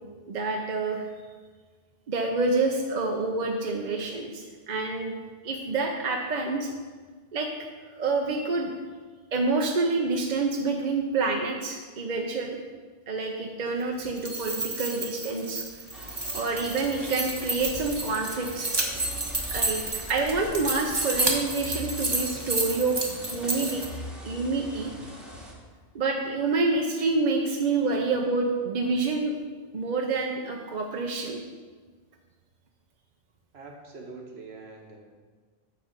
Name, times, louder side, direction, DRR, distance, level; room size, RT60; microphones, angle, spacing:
voice 1, 0.3-1.1 2.1-5.1 5.4-6.7 7.3-8.7 9.3-12.6 13.1-15.6 16.3-18.7 19.5-23.0 23.3-23.8 24.2-24.9 25.9-29.4 29.7-31.4, right 3 dB, 50° right, 1 dB, 0.7 m, -27 dB
sound 1, 14.0-23.9, right 2 dB, 25° right, 0.9 m, -31 dB
sound 2, 15.9-25.5, equal, ahead, 1.0 m, -41 dB
voice 2, 33.5-35.0, right 3 dB, 70° right, 0 dB, 1.5 m, -44 dB
9.3 x 3.3 x 6.5 m, 1.5 s
omnidirectional pair, 1.1 m